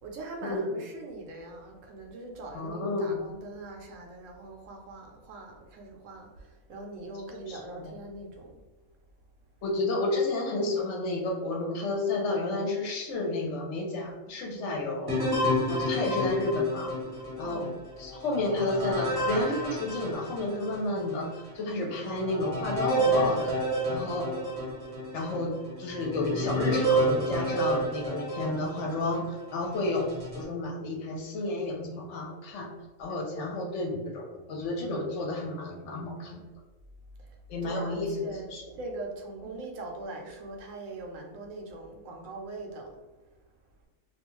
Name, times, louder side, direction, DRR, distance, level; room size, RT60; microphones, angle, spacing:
voice 1, 0.0-8.6 17.4-17.8 37.2-37.4 37.6-43.0, right 2 dB, 75° right, 1 dB, 0.9 m, -42 dB
voice 2, 2.5-3.2 7.3-7.9 9.6-15.2 15.7-16.9 17.4-17.6 18.0-21.3 21.5-23.5 23.9-24.3 25.1-32.7 33.0-36.4 37.5-38.6, left 2 dB, 65° left, 0 dB, 0.8 m, -31 dB
sound 1, 15.1-20.8 21.4-21.5 22.0-29.2 29.8-30.4, right 1 dB, 20° right, 0.7 m, -30 dB
2.4 x 2.2 x 3.0 m, 1.2 s
omnidirectional pair, 1.4 m